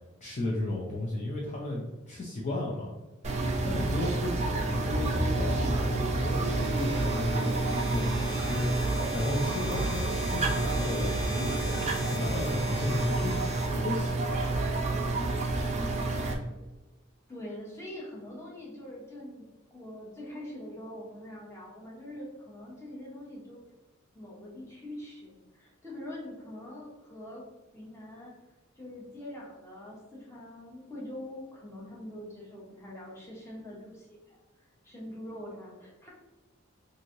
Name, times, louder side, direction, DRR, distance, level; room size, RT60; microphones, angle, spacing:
voice 1, 0.2-2.9 3.6-7.5 7.9-8.7 9.1-13.3 13.7-14.5, left 1 dB, 35° left, -4 dB, 0.4 m, -34 dB
sound 1, 3.2-16.3, right 2 dB, 30° right, 0.4 m, -29 dB
sound 2, 6.3-14.3, equal, 50° left, 0.8 m, -41 dB
voice 2, 17.3-19.4 19.7-23.7 24.1-27.5 27.7-28.3 28.8-36.1, left 1 dB, 15° left, -4 dB, 0.8 m, -44 dB
3.0 x 2.6 x 2.5 m, 1.1 s
head